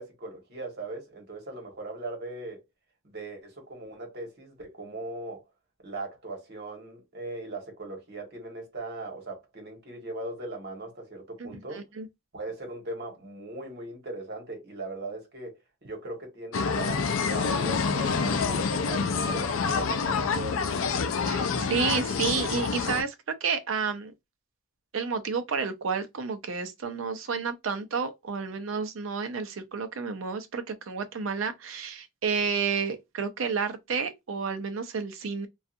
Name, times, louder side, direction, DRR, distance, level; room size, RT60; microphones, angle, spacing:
voice 1, 0.0-2.6 3.0-5.4 5.8-11.8 12.3-20.8, right 2 dB, 55° right, 1.1 m, -39 dB
voice 2, 11.4-12.1 21.2-24.1 24.9-35.5, right 5 dB, 70° right, 0.5 m, -31 dB
sound 1, 16.5-23.0, left 5 dB, 70° left, 0.4 m, -27 dB
2.6 x 2.3 x 2.4 m
head